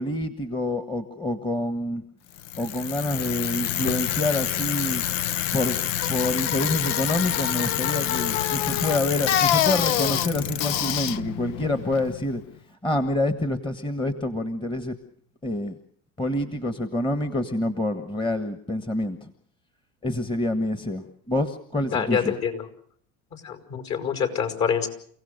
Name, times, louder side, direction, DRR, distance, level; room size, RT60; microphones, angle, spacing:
voice 1, 0.0-2.0 2.6-5.0 5.5-5.8 6.1-12.4 12.8-15.0 15.4-15.8 16.2-19.3 20.0-22.3, left 1 dB, 15° left, 9 dB, 1.5 m, -27 dB
Bicycle, 2.4-12.4, left 11 dB, 85° left, 0.9 m, -26 dB
voice 2, 21.9-22.7 23.3-24.9, left 7 dB, 50° left, 7 dB, 5.4 m, -26 dB
29.5 x 17.0 x 6.7 m, 0.64 s
supercardioid pair, 100°, 36 cm